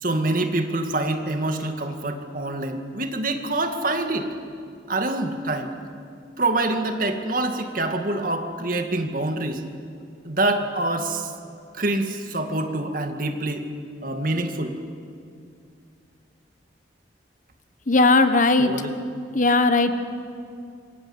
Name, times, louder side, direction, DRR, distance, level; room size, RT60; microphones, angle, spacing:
voice 1, 0.0-4.3 4.9-5.7 6.4-9.6 10.2-11.3 11.7-13.6 14.0-14.7 18.6-18.9, right 2 dB, 45° right, 5 dB, 2.2 m, -26 dB
voice 2, 17.9-18.7 19.3-19.9, left 3 dB, 45° left, 9 dB, 1.3 m, -17 dB
27.0 x 23.5 x 8.2 m, 2.4 s
head